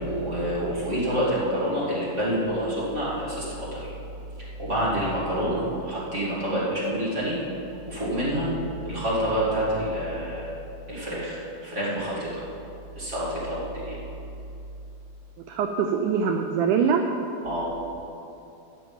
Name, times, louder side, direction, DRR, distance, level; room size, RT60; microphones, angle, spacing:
voice 1, 0.0-3.9 4.4-7.4 7.9-8.5 8.8-10.5 10.9-12.4 12.9-14.0 17.4-17.7, equal, 25° right, -7 dB, 2.0 m, -27 dB
voice 2, 15.5-17.1, right 6 dB, 85° right, 4 dB, 1.8 m, -23 dB
10.5 x 6.1 x 8.8 m, 2.8 s
omnidirectional pair, 4.2 m